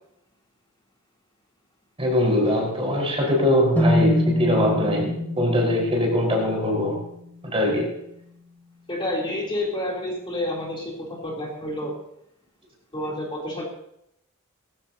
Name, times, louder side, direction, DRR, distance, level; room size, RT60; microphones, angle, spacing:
voice 1, 2.0-7.0 7.4-7.9, left 1 dB, 25° right, -1 dB, 4.5 m, -22 dB
sound 1, 3.8-7.7, left 1 dB, 10° left, 2.1 m, -25 dB
voice 2, 8.9-11.9 12.9-13.6, left 1 dB, 25° left, -2 dB, 3.1 m, -29 dB
19.5 x 15.5 x 2.8 m, 0.76 s
head